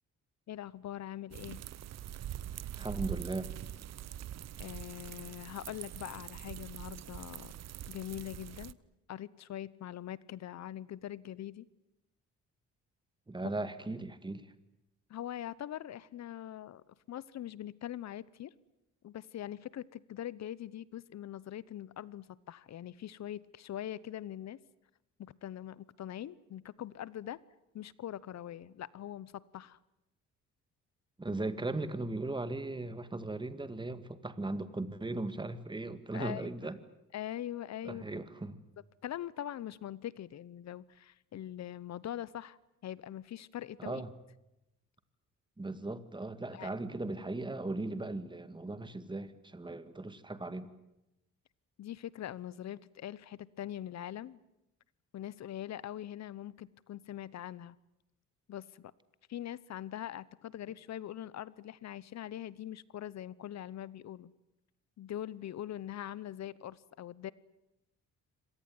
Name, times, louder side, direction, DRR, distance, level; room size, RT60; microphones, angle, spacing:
voice 1, 0.5-1.6 4.6-7.5 7.9-8.8 9.1-11.7 15.1-18.5 19.0-24.6 25.2-27.4 27.7-29.8 36.1-36.5 37.1-38.0 39.0-44.0 46.5-46.7 51.8-54.4 55.1-57.8 58.5-58.9 59.3-64.3 65.0-67.3, left 11 dB, 60° left, 21 dB, 1.0 m, -42 dB
sound 1, 1.3-8.7, right 11 dB, 60° right, 0.8 m, -43 dB
voice 2, 2.8-3.5 13.3-14.5 31.2-36.8 37.8-38.6 43.8-44.1 45.6-50.7, right 2 dB, 15° right, 12 dB, 2.0 m, -38 dB
25.5 x 18.5 x 9.6 m, 0.89 s
cardioid pair, 90°, 30 cm